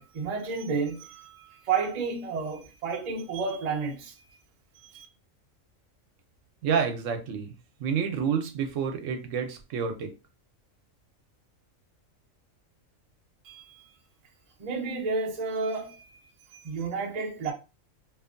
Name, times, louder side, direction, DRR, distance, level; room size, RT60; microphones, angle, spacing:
voice 1, 0.0-4.1 4.8-5.1 13.4-13.9 14.6-16.2 16.5-17.5, right 5 dB, 55° right, 0.4 m, -31 dB
voice 2, 6.6-7.5 7.8-10.1, right 6 dB, 70° right, 0.9 m, -29 dB
2.7 x 2.5 x 2.5 m
omnidirectional pair, 1.4 m